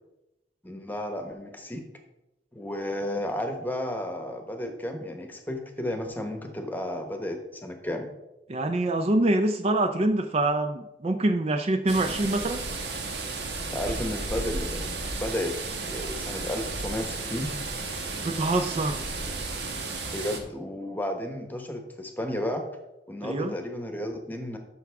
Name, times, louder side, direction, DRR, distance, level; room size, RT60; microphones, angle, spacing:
voice 1, 0.6-1.8 2.5-8.1 13.7-14.9 15.2-15.5 15.9-17.5 20.1-22.6 23.1-24.6, left 1 dB, 10° left, 5 dB, 1.1 m, -33 dB
voice 2, 8.5-12.6 18.2-19.0 23.2-23.5, right 2 dB, 35° right, 7 dB, 0.4 m, -25 dB
sound 1, 11.9-20.4, right 3 dB, 70° right, 1.2 m, -33 dB
12.0 x 5.9 x 3.5 m, 0.93 s
head